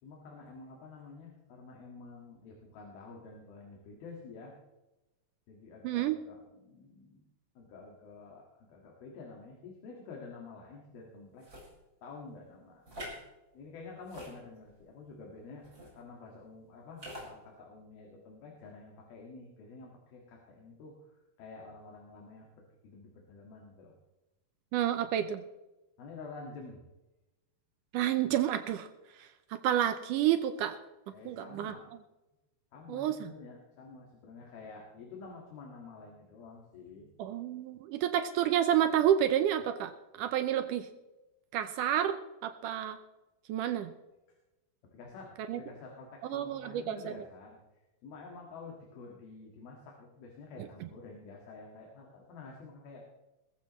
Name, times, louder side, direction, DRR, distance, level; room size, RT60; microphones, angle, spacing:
voice 1, 0.0-4.5 5.5-7.2 7.6-11.5 12.0-12.8 13.5-22.5 22.8-23.9 26.0-26.8 31.1-31.9 32.7-37.1 44.8-47.6 48.0-53.0, left 4 dB, 75° left, -1 dB, 3.8 m, -49 dB
voice 2, 5.8-6.2 24.7-25.4 27.9-28.9 29.2-30.8 31.3-31.7 32.9-33.3 37.2-40.9 41.5-43.0 43.5-43.9 45.5-45.6 46.2-47.1 50.6-50.7, right 11 dB, 80° right, 10 dB, 1.9 m, -30 dB
sound 1, 11.4-11.7 12.9-13.2 14.0-14.8 15.6-15.9 17.0-17.3, equal, 25° right, 5.8 m, -44 dB
21.0 x 15.0 x 3.1 m, 1.0 s
omnidirectional pair, 4.4 m